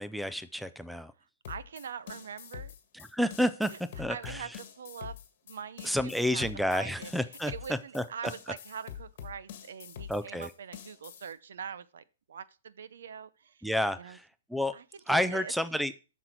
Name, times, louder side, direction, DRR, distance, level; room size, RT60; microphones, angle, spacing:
voice 1, 0.0-1.1 3.1-3.7 4.0-4.5 5.8-8.0 10.1-10.5 13.6-14.2 14.5-14.7 15.1-15.9, equal, ahead, 13 dB, 0.3 m, -30 dB
voice 2, 1.2-2.7 3.7-3.8 4.1-5.1 5.4-6.5 6.7-13.7 14.0-14.2 14.7-15.5, right 7 dB, 70° right, 16 dB, 0.6 m, -43 dB
sound 1, 1.4-11.3, left 9 dB, 40° left, 1.5 m, -45 dB
8.0 x 6.2 x 4.4 m, 0.33 s
hypercardioid pair, 170°, 0 cm